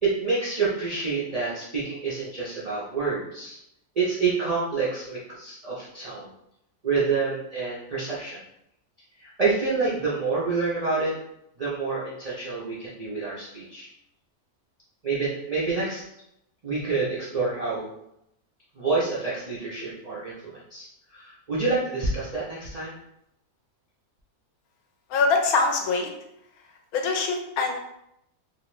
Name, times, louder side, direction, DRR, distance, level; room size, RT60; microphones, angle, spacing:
voice 1, 0.0-3.6 4.0-6.3 6.8-8.4 9.2-11.1 11.6-13.9 15.0-16.0 16.6-17.9 18.7-22.9, right 4 dB, 60° right, -7 dB, 0.4 m, -28 dB
voice 2, 25.1-26.1 26.9-27.8, left 4 dB, 80° left, 4 dB, 1.0 m, -23 dB
2.8 x 2.4 x 3.1 m, 0.80 s
omnidirectional pair, 1.6 m